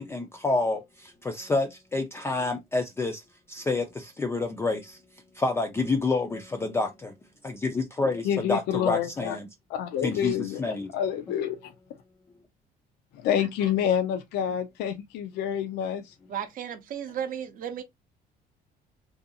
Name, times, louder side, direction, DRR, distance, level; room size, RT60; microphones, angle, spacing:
voice 1, 0.0-3.2 3.5-5.0 5.3-7.1 7.4-9.5 10.0-10.9, left 3 dB, 15° left, 0.3 m, -28 dB
voice 2, 8.2-9.4 9.7-11.7 13.1-16.1, left 9 dB, 80° left, 0.5 m, -28 dB
voice 3, 16.3-17.8, right 9 dB, 55° right, 0.6 m, -34 dB
2.6 x 2.2 x 2.6 m
cardioid pair, 110°, 17 cm